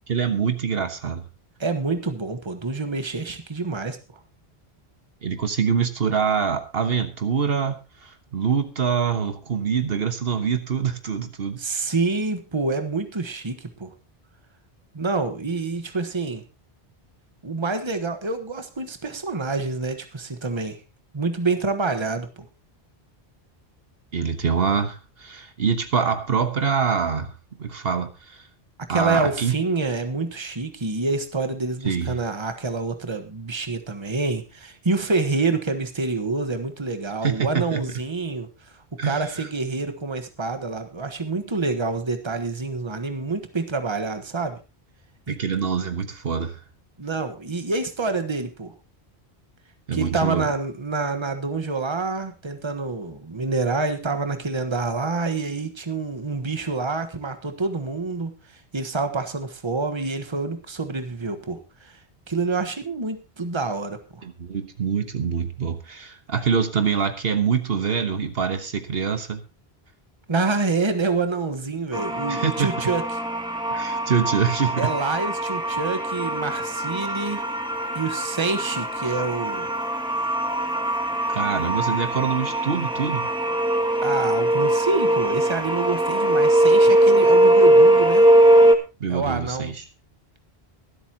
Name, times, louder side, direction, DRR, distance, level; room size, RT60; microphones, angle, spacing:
voice 1, 0.1-1.3 5.2-11.6 24.1-27.3 27.6-28.5 28.9-29.5 31.8-32.1 37.2-37.8 39.0-39.5 45.3-46.6 49.9-50.5 64.2-69.4 72.3-72.9 73.7-74.9 81.3-83.3 89.0-89.8, right 6 dB, 70° right, 8 dB, 1.4 m, -25 dB
voice 2, 1.6-4.0 11.6-13.9 14.9-16.4 17.4-20.8 21.1-22.5 28.9-38.5 39.0-44.6 45.3-45.4 47.0-48.7 49.9-58.3 58.7-62.0 62.3-64.2 70.3-73.0 74.8-77.4 77.9-79.7 84.0-88.2 89.1-89.7, right 3 dB, 25° right, 8 dB, 1.3 m, -27 dB
sound 1, 71.9-88.8, right 1 dB, 5° right, 1.5 m, -20 dB
23.5 x 8.2 x 2.9 m, 0.29 s
omnidirectional pair, 1.1 m